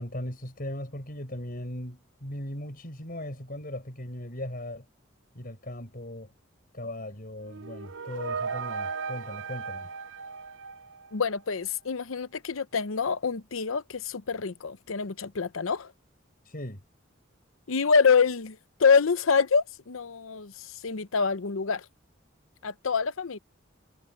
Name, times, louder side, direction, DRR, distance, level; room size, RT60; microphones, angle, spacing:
voice 1, 0.0-4.9 5.3-6.3 6.7-9.9 16.4-16.8, left 1 dB, 45° left, 6.1 m, -38 dB
sound 1, 7.4-11.4, right 5 dB, 65° right, 0.7 m, -36 dB
voice 2, 11.1-15.9 17.7-21.9 22.6-23.4, left 5 dB, 85° left, 0.8 m, -26 dB
head